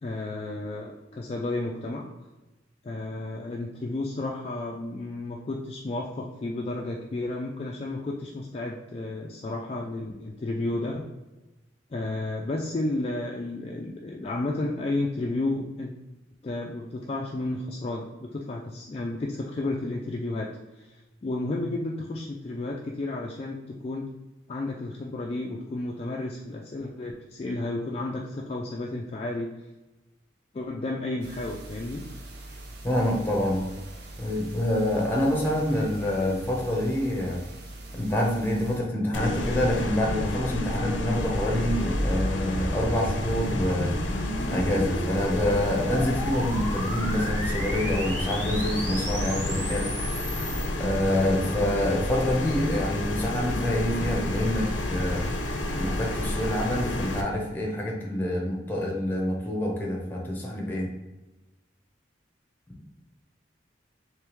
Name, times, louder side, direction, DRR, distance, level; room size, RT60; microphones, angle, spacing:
voice 1, 0.0-2.1 2.8-11.0 11.9-15.9 16.4-20.5 20.8-24.1 24.5-29.5 30.5-32.0, left 2 dB, 35° left, -1 dB, 0.3 m, -32 dB
sound 1, 31.2-38.8, right 1 dB, 60° right, 0.6 m, -43 dB
voice 2, 32.8-33.7 34.2-37.4 37.9-43.9 44.5-49.8 50.8-55.2 55.7-60.9, left 1 dB, 10° left, -2 dB, 0.8 m, -27 dB
sound 2, 39.1-57.2, left 1 dB, 80° left, 0.5 m, -30 dB
sound 3, 40.7-50.7, equal, 35° right, 1.5 m, -34 dB
3.4 x 3.2 x 3.0 m, 1.1 s
head